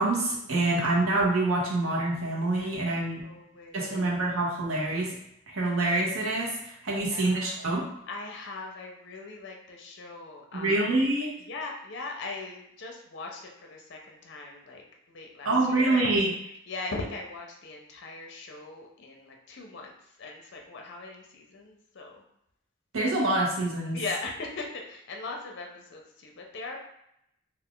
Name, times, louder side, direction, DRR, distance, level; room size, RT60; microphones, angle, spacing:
voice 1, 0.0-3.2 3.7-5.1 5.5-7.9 10.5-11.4 15.4-16.3 22.9-24.0, right 2 dB, 90° right, -4 dB, 0.9 m, -26 dB
voice 2, 3.2-4.1 6.9-7.6 8.1-10.9 11.5-16.3 16.7-19.9 20.2-22.2 23.9-26.8, left 3 dB, 55° left, 1 dB, 0.5 m, -40 dB
2.4 x 2.4 x 3.6 m, 0.79 s
head